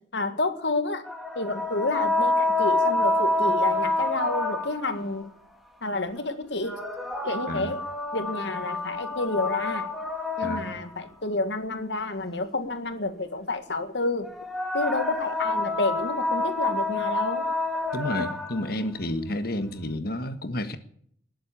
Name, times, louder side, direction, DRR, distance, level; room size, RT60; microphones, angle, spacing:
voice 1, 0.1-1.0 1.4-5.3 5.8-6.8 7.2-7.8 8.1-9.9 10.4-14.3 14.7-17.5, left 2 dB, 80° left, 1.9 m, -29 dB
sound 1, 1.0-5.0 6.5-11.1 14.2-18.7, left 2 dB, ahead, 2.1 m, -27 dB
voice 2, 7.5-7.8 10.4-10.7 17.9-20.8, left 1 dB, 60° left, 1.5 m, -31 dB
19.5 x 7.9 x 8.5 m
head